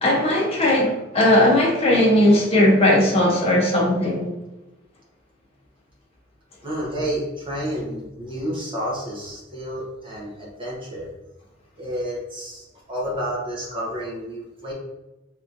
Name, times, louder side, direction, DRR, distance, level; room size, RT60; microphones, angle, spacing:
voice 1, 0.0-4.2, left 1 dB, 30° left, -2 dB, 0.7 m, -18 dB
voice 2, 6.6-11.1 11.8-14.7, equal, 30° right, -4 dB, 1.0 m, -30 dB
3.6 x 2.9 x 2.6 m, 1.0 s
head